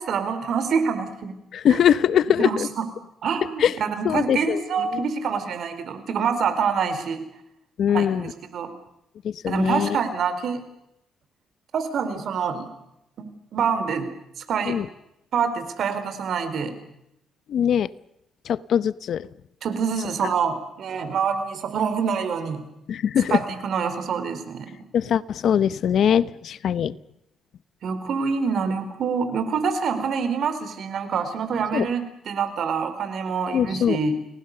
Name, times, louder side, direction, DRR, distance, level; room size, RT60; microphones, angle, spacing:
voice 1, 0.0-1.3 1.7-1.8 2.4-2.9 3.2-7.2 7.9-8.7 9.5-10.6 11.7-12.7 13.2-14.0 14.4-14.8 15.3-16.7 19.6-22.6 23.3-24.8 27.8-34.2, right 6 dB, 65° right, 9 dB, 4.5 m, -26 dB
voice 2, 1.5-2.7 3.6-3.7 4.0-4.6 7.8-8.3 9.2-9.9 14.7-14.8 17.5-17.9 18.5-19.3 22.9-23.4 24.9-26.9 31.7-31.9 33.5-34.0, left 9 dB, 65° left, 18 dB, 0.8 m, -21 dB
29.5 x 19.5 x 6.8 m, 0.83 s
cardioid pair, 90°, 0 cm